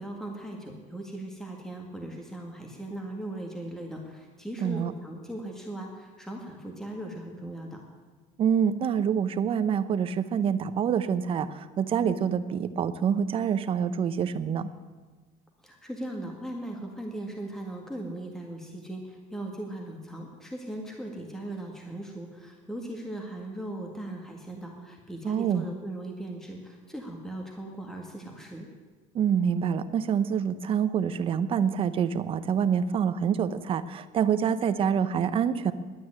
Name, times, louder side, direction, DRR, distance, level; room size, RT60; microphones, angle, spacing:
voice 1, 0.0-7.8 15.6-28.7, right 1 dB, 5° left, 1 dB, 1.9 m, -38 dB
voice 2, 4.6-4.9 8.4-14.7 25.2-25.6 29.1-35.7, right 7 dB, 40° right, 12 dB, 0.8 m, -26 dB
11.0 x 9.4 x 9.8 m, 1.4 s
cardioid pair, 140°, 14 cm